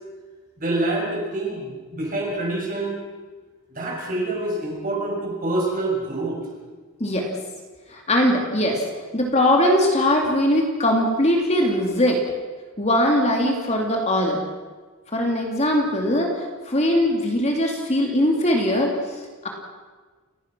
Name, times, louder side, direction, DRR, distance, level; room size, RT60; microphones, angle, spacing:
voice 1, 0.6-3.0 3.7-6.4, right 2 dB, 40° right, -2 dB, 6.5 m, -26 dB
voice 2, 7.0-7.3 7.9-8.8 9.1-12.2 12.8-14.4 15.1-19.5, left 1 dB, 30° left, 1 dB, 2.7 m, -21 dB
29.5 x 16.5 x 6.2 m, 1.4 s
head